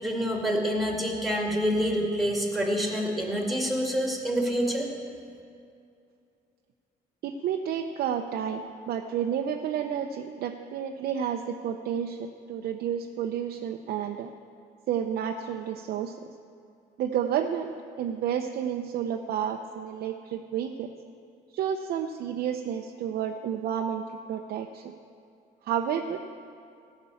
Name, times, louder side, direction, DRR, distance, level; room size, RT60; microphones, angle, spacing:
voice 1, 0.0-4.9, equal, ahead, 0 dB, 2.2 m, -27 dB
voice 2, 7.2-14.3 14.9-16.2 17.0-20.9 21.5-24.9 25.7-26.2, right 8 dB, 65° right, 4 dB, 0.6 m, -31 dB
14.5 x 6.0 x 8.5 m, 2.5 s
cardioid pair, 110°, 17 cm